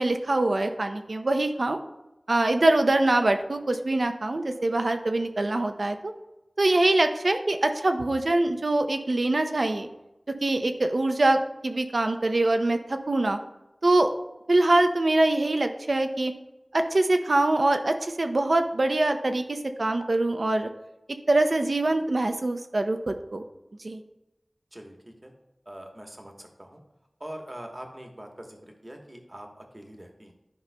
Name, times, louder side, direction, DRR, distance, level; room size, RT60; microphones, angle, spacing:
voice 1, 0.0-1.8 2.3-6.1 6.6-9.9 10.4-13.4 13.8-14.1 14.5-16.3 16.7-20.7 21.3-23.4 23.8-24.0, right 2 dB, 75° right, 7 dB, 0.6 m, -24 dB
voice 2, 24.7-25.3 25.7-26.8 27.2-30.3, right 1 dB, 30° right, 2 dB, 1.1 m, -43 dB
11.0 x 5.3 x 2.2 m, 0.94 s
wide cardioid pair, 55°, 0 cm